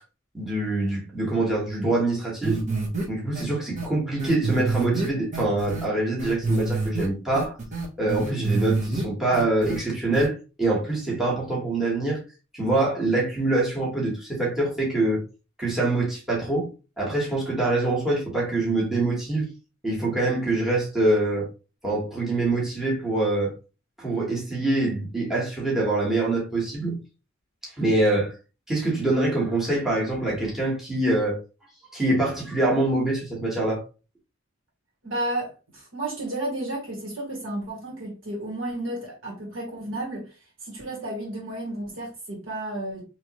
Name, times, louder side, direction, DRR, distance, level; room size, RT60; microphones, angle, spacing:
voice 1, 0.3-2.6 3.1-7.6 8.0-12.2 12.5-15.2 15.6-16.7 17.0-19.5 19.8-21.5 21.8-23.5 24.0-27.0 27.6-28.3 28.7-31.4 31.9-33.8, right 2 dB, ahead, 1.4 m, -24 dB
sound 1, 2.4-3.0 3.4-3.5 3.8-3.9 4.2-5.9 6.2-7.1 7.3-9.0 9.3-9.8 10.1-10.3, right 3 dB, 40° right, 1.2 m, -27 dB
voice 2, 35.0-40.4 40.6-43.0, right 1 dB, 65° right, 1.9 m, -32 dB
3.4 x 3.0 x 2.9 m
head